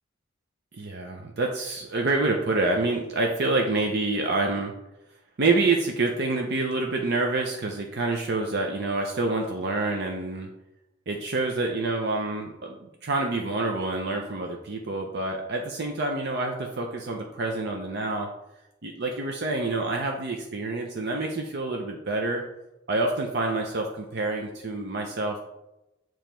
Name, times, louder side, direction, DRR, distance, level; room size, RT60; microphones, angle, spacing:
voice 1, 0.8-4.7 5.4-10.5 11.1-12.7 13.0-18.3 18.8-22.4 22.9-25.4, right 2 dB, 60° right, 2 dB, 0.6 m, -27 dB
7.1 x 3.1 x 4.4 m, 0.92 s
head